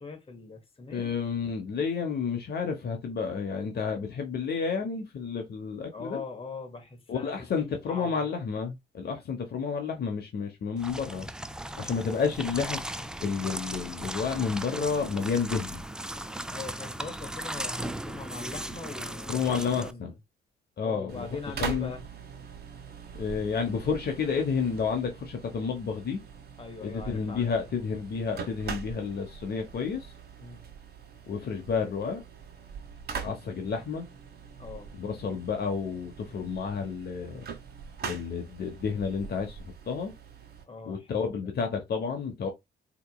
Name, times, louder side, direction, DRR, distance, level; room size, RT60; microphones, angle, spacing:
voice 1, 0.0-1.1 5.9-7.3 7.6-8.2 16.5-19.4 19.8-20.1 20.8-22.0 26.6-27.5 30.4-30.6 34.6-34.9 40.7-41.5, left 4 dB, 30° left, 1.3 m, -41 dB
voice 2, 0.9-6.2 7.1-11.3 11.8-15.8 19.3-20.1 20.8-21.3 21.6-21.9 23.1-26.2 26.8-30.1 31.3-32.2 33.2-34.0 34.9-37.4 38.1-40.1 40.9-42.5, left 5 dB, 55° left, 0.9 m, -30 dB
sound 1, 10.8-19.9, right 1 dB, 5° right, 0.3 m, -37 dB
sound 2, 21.1-40.6, right 6 dB, 55° right, 1.2 m, -42 dB
4.3 x 2.9 x 2.3 m
cardioid pair, 90°, 20 cm